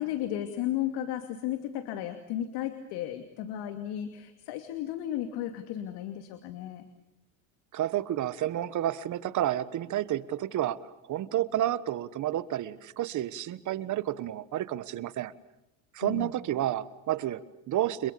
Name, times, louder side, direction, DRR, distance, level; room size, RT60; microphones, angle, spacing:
voice 1, 0.0-6.9 16.0-16.3, left 11 dB, 65° left, 8 dB, 2.6 m, -34 dB
voice 2, 7.7-15.3 15.9-18.1, right 12 dB, 45° right, 16 dB, 1.4 m, -30 dB
30.0 x 26.5 x 6.9 m, 0.85 s
supercardioid pair, 120°, 41 cm